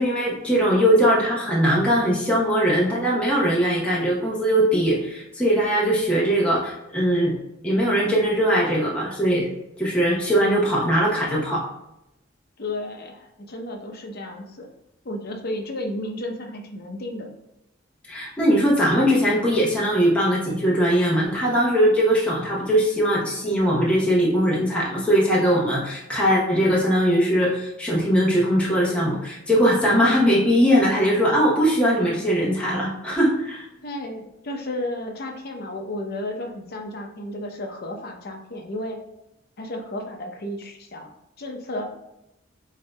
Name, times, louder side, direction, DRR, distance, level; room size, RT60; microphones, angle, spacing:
voice 1, 0.0-7.4 7.6-9.5 9.8-11.6 18.1-33.6, equal, 5° left, -6 dB, 1.0 m, -20 dB
voice 2, 12.6-14.7 15.0-17.3 33.8-39.0 39.6-41.1 41.4-41.8, left 1 dB, 55° left, 2 dB, 0.7 m, -33 dB
8.2 x 2.8 x 2.3 m, 0.86 s
head